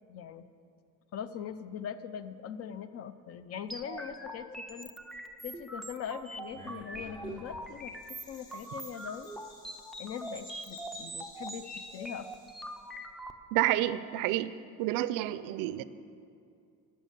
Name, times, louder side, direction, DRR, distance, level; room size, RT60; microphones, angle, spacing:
voice 1, 0.1-0.5 1.1-4.9 5.4-7.9 8.3-9.3 10.0-12.3, left 8 dB, 50° left, 12 dB, 0.6 m, -41 dB
sound 1, 3.7-13.3, right 1 dB, ahead, 0.4 m, -43 dB
Bird vocalization bird call bird song, 6.5-12.8, left 1 dB, 85° left, 2.8 m, -51 dB
voice 2, 13.5-14.5 14.8-15.8, right 14 dB, 80° right, 15 dB, 0.5 m, -29 dB
12.0 x 6.5 x 8.1 m, 2.4 s
cardioid pair, 145°, 32 cm